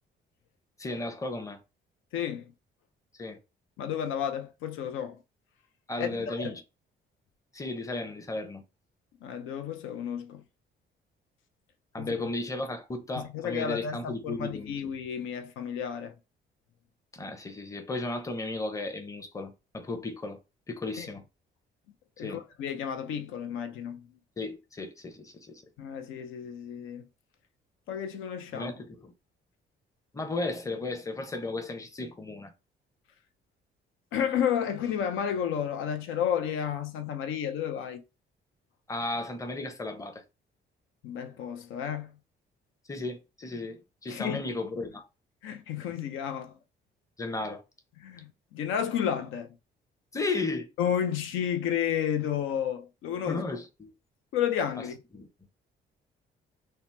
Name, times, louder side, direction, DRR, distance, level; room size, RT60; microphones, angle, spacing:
voice 1, 0.8-1.6 3.2-3.4 5.9-6.6 7.5-8.6 11.9-14.8 17.1-20.4 20.7-21.2 22.2-22.4 24.4-25.6 28.5-29.1 30.1-32.5 38.9-40.2 42.9-45.1 47.2-47.6 50.1-50.7 53.3-53.9 55.1-55.3, left 2 dB, 15° left, 0.6 m, -34 dB
voice 2, 2.1-2.5 3.8-5.2 6.0-6.5 9.2-10.4 12.0-12.1 13.2-16.1 21.0-21.1 22.2-24.1 25.8-27.1 27.9-28.7 34.1-38.0 41.0-42.1 44.1-44.4 45.4-46.5 48.0-49.5 50.8-53.4 54.3-55.0, left 9 dB, 85° left, 0.5 m, -32 dB
2.8 x 2.0 x 3.2 m
cardioid pair, 90°, 20 cm